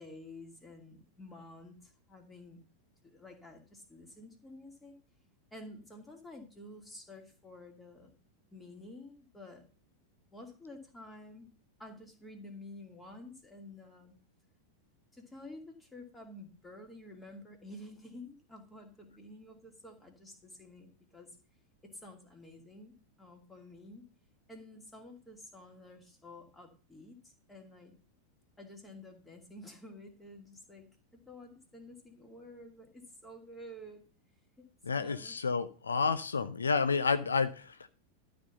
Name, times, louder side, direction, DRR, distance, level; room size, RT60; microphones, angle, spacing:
voice 1, 0.0-2.6 3.0-5.0 5.5-8.1 8.5-9.6 10.3-11.5 11.8-14.1 15.1-21.4 21.8-24.0 24.5-27.9 28.6-30.9 31.1-34.0 34.6-34.7 35.0-35.4, left 1 dB, 10° left, 3 dB, 2.5 m, -50 dB
voice 2, 34.9-37.9, left 5 dB, 75° left, 11 dB, 0.6 m, -30 dB
12.5 x 4.4 x 6.9 m, 0.37 s
figure-of-eight pair, 90°, 0 cm